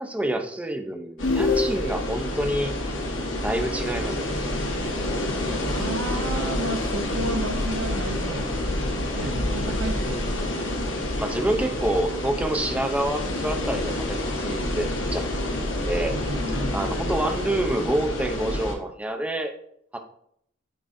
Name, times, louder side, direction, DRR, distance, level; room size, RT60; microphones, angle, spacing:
voice 1, 0.0-2.7 3.4-4.3 9.2-9.3 11.2-15.2 15.6-16.1 16.7-19.5 19.9-20.0, right 1 dB, 5° right, 4 dB, 0.6 m, -27 dB
sound 1, 1.2-18.7, left 1 dB, 70° left, 1.1 m, -28 dB
sound 2, 1.2-2.3, left 3 dB, 45° left, 0.6 m, -25 dB
voice 2, 5.6-8.5 8.9-10.2 16.1-16.9, right 2 dB, 85° right, 6 dB, 0.7 m, -32 dB
10.0 x 3.9 x 2.6 m, 0.69 s
head